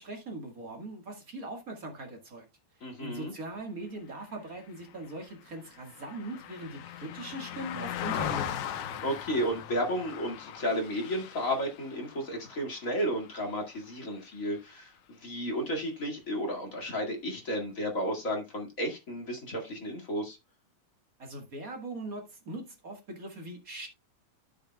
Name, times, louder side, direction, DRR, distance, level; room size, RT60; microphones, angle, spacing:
voice 1, 0.0-2.4 3.0-8.6 21.2-23.9, right 2 dB, 40° right, 1.3 m, -41 dB
voice 2, 2.8-3.3 9.0-14.9 15.2-20.4, equal, 30° left, 1.9 m, -33 dB
Car passing by, 4.6-14.1 14.5-14.7, left 9 dB, 70° left, 1.9 m, -39 dB
13.0 x 6.6 x 2.2 m
omnidirectional pair, 3.9 m